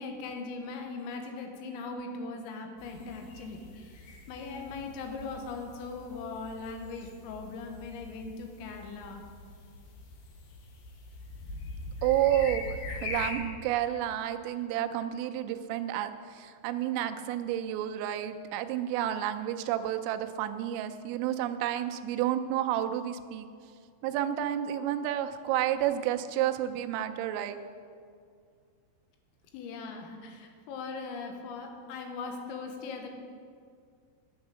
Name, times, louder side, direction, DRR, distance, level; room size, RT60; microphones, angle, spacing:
voice 1, 0.0-9.3 29.5-33.1, left 4 dB, 85° left, 4 dB, 3.8 m, -40 dB
sound 1, 2.8-13.3, left 3 dB, 65° left, 2.2 m, -43 dB
voice 2, 12.0-23.5 24.0-27.6, right 11 dB, 85° right, 7 dB, 3.2 m, -30 dB
10.5 x 9.4 x 6.3 m, 2.2 s
omnidirectional pair, 5.9 m